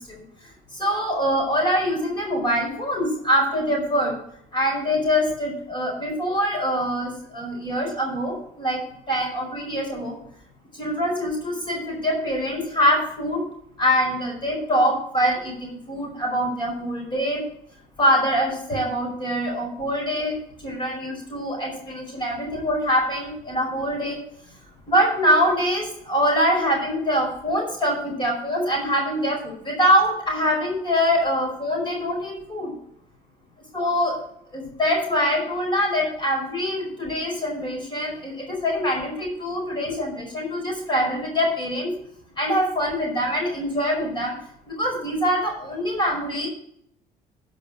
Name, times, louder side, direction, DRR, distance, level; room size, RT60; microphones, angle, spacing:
voice 1, 0.7-4.1 4.5-8.8 9.1-10.2 10.8-13.4 13.8-15.5 15.9-17.4 18.0-20.4 20.6-24.2 24.9-32.7 33.7-34.1 34.5-41.9 42.4-44.3 44.7-46.5, equal, 30° left, 0 dB, 5.1 m, -24 dB
10.5 x 5.9 x 6.4 m, 0.71 s
supercardioid pair, 90°, 16 cm